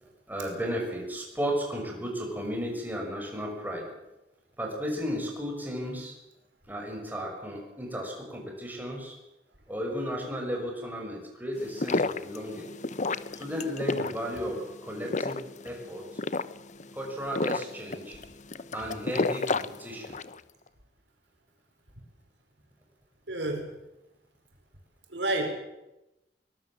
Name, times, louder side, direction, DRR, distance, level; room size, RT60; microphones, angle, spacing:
voice 1, 0.3-3.9 4.6-6.1 6.7-9.1 9.7-12.7 13.4-16.2 16.9-18.2 18.7-20.2, equal, 10° right, 0 dB, 6.1 m, -34 dB
sound 1, 11.6-20.4, left 3 dB, 45° left, 0.8 m, -32 dB
voice 2, 23.3-23.7 25.1-25.5, right 2 dB, 80° right, 3 dB, 5.3 m, -29 dB
22.5 x 20.0 x 7.5 m, 0.93 s
head